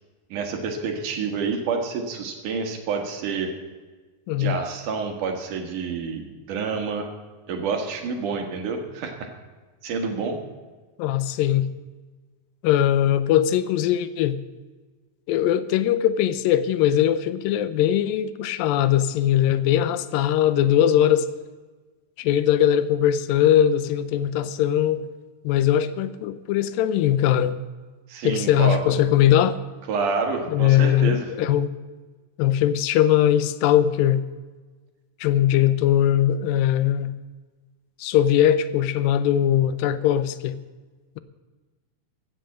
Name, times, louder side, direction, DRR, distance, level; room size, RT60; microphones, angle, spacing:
voice 1, 0.3-3.5 4.4-7.1 7.5-9.3 9.8-10.4 28.1-28.8 29.9-31.3, right 5 dB, 65° right, 4 dB, 2.8 m, -28 dB
voice 2, 11.0-11.7 12.6-14.4 15.3-21.3 22.2-25.1 25.4-27.6 28.2-29.6 30.5-31.7 32.4-34.2 35.2-37.1 38.0-40.6, left 11 dB, 85° left, 14 dB, 2.4 m, -20 dB
15.5 x 7.7 x 7.6 m, 1.3 s
omnidirectional pair, 4.1 m